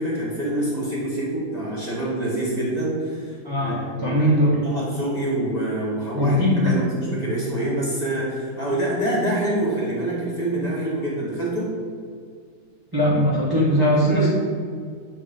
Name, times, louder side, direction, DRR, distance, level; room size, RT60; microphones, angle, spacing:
voice 1, 0.0-4.3 4.6-11.7 13.8-14.3, right 1 dB, 25° left, -6 dB, 1.1 m, -26 dB
voice 2, 3.4-4.6 6.1-6.7 12.9-14.3, equal, 20° right, -7 dB, 0.6 m, -20 dB
7.4 x 2.7 x 5.2 m, 2.1 s
omnidirectional pair, 2.1 m